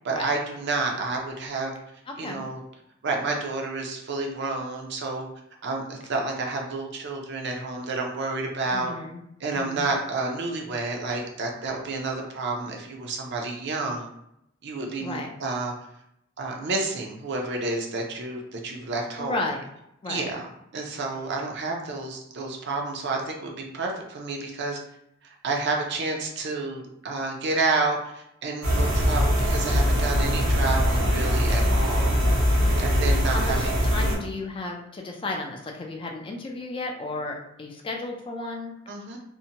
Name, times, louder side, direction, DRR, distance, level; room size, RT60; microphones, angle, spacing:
voice 1, 0.0-1.7 2.2-2.6 3.0-5.3 5.6-8.9 9.4-14.1 14.6-15.7 16.4-19.5 20.1-20.5 20.7-24.8 25.2-32.1 32.8-33.7 38.9-39.2, right 3 dB, 60° right, 1 dB, 0.5 m, -30 dB
voice 2, 2.1-2.5 8.7-9.2 9.5-9.9 15.0-15.3 19.2-19.7 20.0-20.3 33.3-38.7, left 2 dB, 25° left, 1 dB, 0.3 m, -33 dB
sound 1, 28.6-34.2, equal, 90° right, 1.0 m, -22 dB
2.6 x 2.1 x 2.7 m, 0.79 s
head